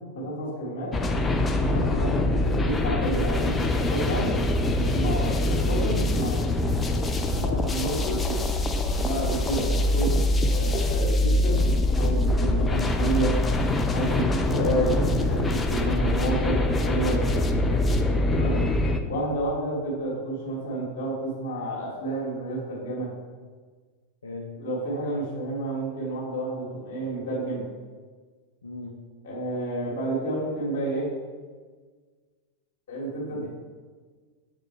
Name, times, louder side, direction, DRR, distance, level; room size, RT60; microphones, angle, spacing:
voice 1, 0.1-0.9 1.6-1.9 2.6-4.3 4.7-6.4 7.7-8.4 9.0-10.1 10.4-11.6 11.9-13.4 13.9-17.2 18.3-18.6 19.1-23.1 24.6-27.7 29.2-31.1 32.9-33.5, right 1 dB, 55° left, -6 dB, 2.3 m, -30 dB
sound 1, 0.9-19.0, left 1 dB, 15° left, 0.6 m, -24 dB
voice 2, 1.9-2.3 7.4-7.7 15.9-16.2 18.4-18.7 24.2-24.5 28.6-29.0 33.4-33.5, left 2 dB, 70° left, -1 dB, 0.7 m, -37 dB
7.5 x 4.9 x 4.6 m, 1.5 s
figure-of-eight pair, 90°, 0 cm